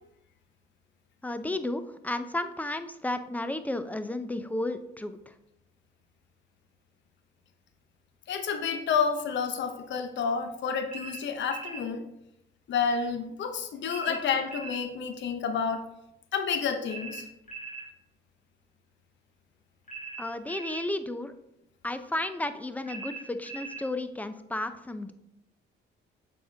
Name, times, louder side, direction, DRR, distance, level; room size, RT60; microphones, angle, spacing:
voice 1, 1.2-5.2 14.1-14.2 20.2-21.3 21.8-25.1, left 1 dB, 10° left, 10 dB, 0.5 m, -33 dB
voice 2, 8.3-12.0 12.7-15.8 16.3-17.2, left 6 dB, 65° left, 7 dB, 0.9 m, -29 dB
sound 1, 10.9-11.9 13.9-14.8 16.9-17.9 19.9-20.9 22.9-23.9, right 4 dB, 40° left, 1.8 m, -40 dB
7.3 x 4.3 x 3.4 m, 0.84 s
cardioid pair, 90°, 20 cm